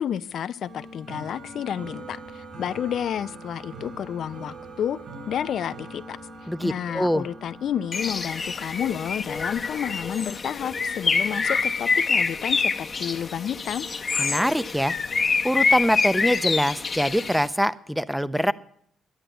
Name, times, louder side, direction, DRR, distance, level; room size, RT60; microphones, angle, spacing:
voice 1, 0.0-5.0 5.3-6.2 6.6-13.9, left 9 dB, 65° left, 15 dB, 0.5 m, -30 dB
sound 1, 0.6-16.7, right 2 dB, 60° right, 5.6 m, -45 dB
voice 2, 6.5-7.2 14.2-14.9 15.4-18.5, equal, ahead, 16 dB, 0.5 m, -24 dB
Bird, 7.9-17.5, left 4 dB, 35° left, 0.9 m, -26 dB
11.0 x 10.0 x 9.0 m, 0.68 s
cardioid pair, 90°, 0 cm